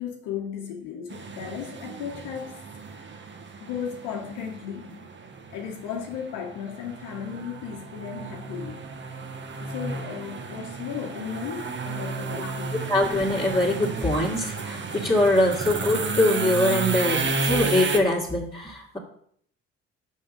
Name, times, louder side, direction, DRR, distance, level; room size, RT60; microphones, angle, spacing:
voice 1, 0.0-2.6 3.6-5.0 5.5-8.9 9.6-12.7, left 8 dB, 80° left, 1 dB, 1.1 m, -35 dB
sound 1, 1.1-18.0, right 4 dB, 40° right, 1.1 m, -32 dB
voice 2, 12.4-19.0, left 1 dB, 15° left, -5 dB, 1.9 m, -23 dB
5.6 x 5.6 x 5.2 m, 0.63 s
hypercardioid pair, 60°, 30 cm